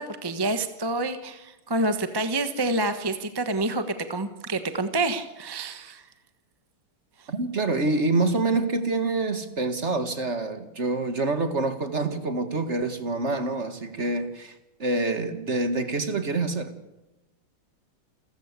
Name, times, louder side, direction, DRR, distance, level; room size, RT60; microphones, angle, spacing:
voice 1, 0.0-6.0 7.2-7.3, right 2 dB, 15° right, 9 dB, 0.9 m, -28 dB
voice 2, 7.3-16.7, right 3 dB, 35° right, 9 dB, 1.8 m, -26 dB
29.0 x 14.5 x 8.3 m, 0.99 s
omnidirectional pair, 2.4 m